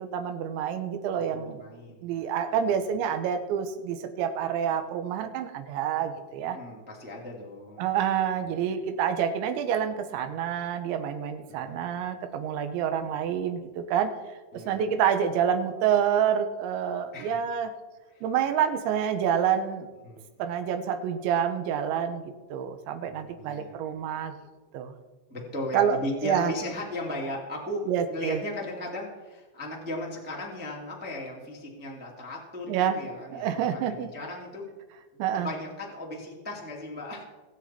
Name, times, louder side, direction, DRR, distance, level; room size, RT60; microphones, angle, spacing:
voice 1, 0.0-1.6 2.0-6.6 7.8-14.1 14.5-17.7 18.2-19.9 20.4-24.3 24.7-25.0 25.7-26.5 27.9-28.4 32.7-33.0 33.3-34.1 35.2-35.5, right 8 dB, 90° right, 7 dB, 3.4 m, -28 dB
voice 2, 1.1-2.3 2.7-2.8 6.4-7.8 8.1-8.6 11.5-11.8 13.0-13.3 14.5-14.9 17.1-17.4 18.1-18.2 20.0-20.3 23.1-23.7 25.3-34.7 35.1-37.2, left 1 dB, 10° right, -2 dB, 0.4 m, -37 dB
22.0 x 7.6 x 4.4 m, 1.2 s
omnidirectional pair, 5.1 m